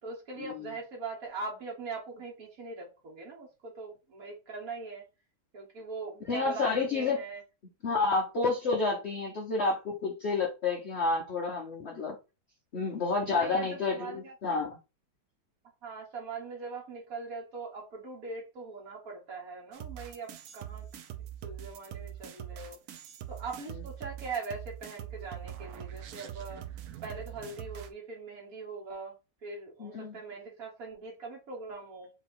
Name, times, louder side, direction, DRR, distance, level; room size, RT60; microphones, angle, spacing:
voice 1, 0.0-5.1 5.5-7.4 13.3-14.3 15.8-20.8 21.4-22.8 23.3-26.6 27.0-29.1 29.4-32.1, right 4 dB, 45° right, 1.4 m, -41 dB
voice 2, 6.3-7.2 7.8-12.2 12.7-14.8 29.8-30.2, left 3 dB, 55° left, 0.7 m, -30 dB
sound 1, 19.7-27.9, right 11 dB, 75° right, 0.8 m, -43 dB
4.2 x 2.9 x 4.3 m
omnidirectional pair, 2.3 m